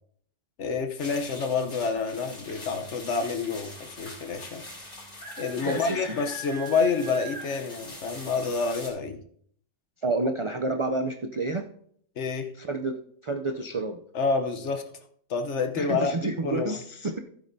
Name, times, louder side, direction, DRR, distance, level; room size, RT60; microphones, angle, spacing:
voice 1, 0.6-4.6 5.4-9.2 12.2-12.5 14.1-14.9 15.3-16.2 16.4-16.8, left 4 dB, 65° left, 6 dB, 1.2 m, -28 dB
sound 1, 1.0-8.9, left 1 dB, 90° left, 4.0 m, -42 dB
voice 2, 5.6-6.0 10.0-11.6 12.6-12.9 13.2-14.0 15.8-17.2, right 2 dB, 55° right, 5 dB, 0.3 m, -29 dB
15.0 x 8.8 x 2.7 m, 0.64 s
omnidirectional pair, 1.3 m